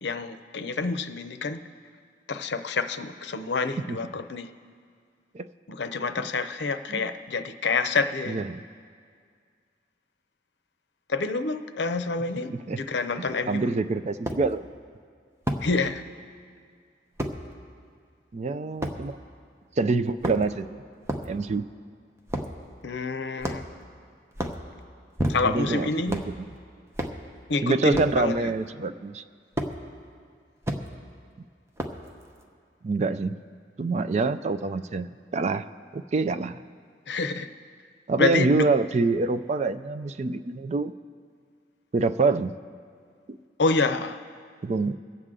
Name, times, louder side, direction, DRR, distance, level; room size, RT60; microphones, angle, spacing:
voice 1, 0.0-1.6 2.3-4.5 5.7-8.4 11.1-13.7 15.6-16.0 22.8-23.7 25.3-26.2 27.5-28.5 37.1-37.5 38.2-38.7 43.6-44.2, left 3 dB, 75° left, 10 dB, 0.6 m, -27 dB
voice 2, 8.3-8.6 12.5-12.8 13.5-14.7 18.3-19.2 19.8-20.7 21.3-21.7 25.2-26.4 27.6-29.2 32.8-33.4 33.8-35.6 35.9-36.6 38.1-40.9 41.9-42.5 43.3-43.4 44.6-45.0, right 3 dB, 40° right, 12 dB, 0.4 m, -26 dB
sound 1, 13.3-13.4 14.3-14.4 15.5-15.7 17.2-17.4 18.8-19.0 20.1-20.6 21.1-21.3 22.3-22.6 23.4-23.8 24.3-24.6 25.2-25.7 26.1-26.3 27.0-27.2 27.9-28.2 29.6-29.7 30.6-30.8 31.8-32.1, right 1 dB, 15° right, 0.8 m, -30 dB
23.5 x 8.0 x 3.7 m, 2.1 s
head